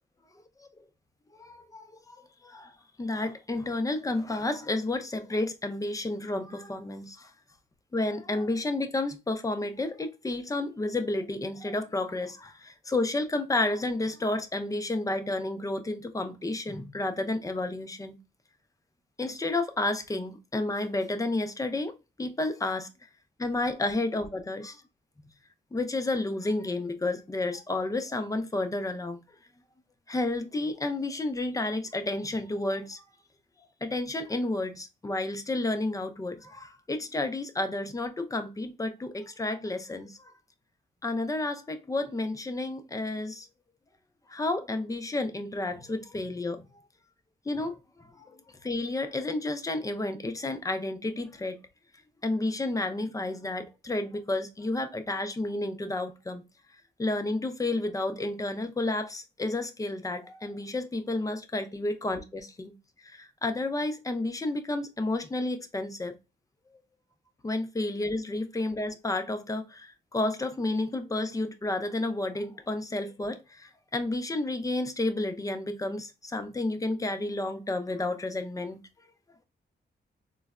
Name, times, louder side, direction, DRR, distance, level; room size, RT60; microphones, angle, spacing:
voice 1, 1.3-2.2 2.4-2.7 3.0-7.3 7.9-18.2 19.2-22.9 23.4-24.8 25.7-29.2 30.1-33.0 33.8-40.3 41.0-43.5 44.3-46.6 47.5-48.3 48.6-51.6 52.2-56.4 57.0-62.7 63.0-66.1 67.4-78.8, left 2 dB, 20° left, 0.5 m, -31 dB
3.8 x 2.1 x 2.3 m
cardioid pair, 95°, 19 cm